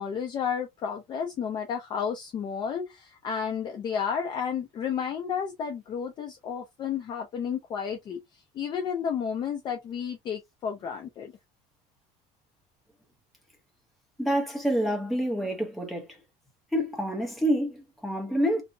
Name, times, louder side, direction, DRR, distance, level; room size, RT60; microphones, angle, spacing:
voice 1, 0.0-8.2 8.5-11.3, left 7 dB, 30° left, 0.3 m, -32 dB
voice 2, 14.2-16.2 16.7-18.6, equal, ahead, 0.7 m, -27 dB
2.6 x 2.0 x 2.6 m
cardioid pair, 175°, 16 cm